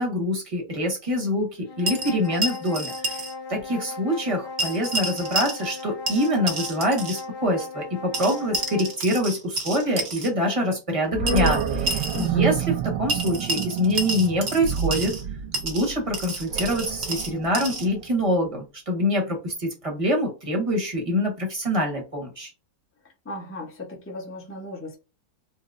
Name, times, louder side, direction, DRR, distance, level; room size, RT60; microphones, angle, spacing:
voice 1, 0.0-3.2 3.5-11.6 12.2-15.1 15.6-22.5, equal, 25° right, 0.9 m, -25 dB
sound 1, 1.6-9.0, left 3 dB, 70° left, 1.5 m, -37 dB
sound 2, 1.9-3.3 3.6-3.7 4.6-5.8 6.1-7.2 8.1-10.3 11.3-12.3 13.1-15.2 15.5-17.9, right 2 dB, 50° right, 0.8 m, -30 dB
Animal, 11.1-18.2, right 9 dB, 85° right, 1.3 m, -29 dB
voice 2, 11.2-11.8 12.1-12.5 23.2-25.0, left 3 dB, 15° left, 0.5 m, -33 dB
4.6 x 2.0 x 2.4 m
omnidirectional pair, 1.9 m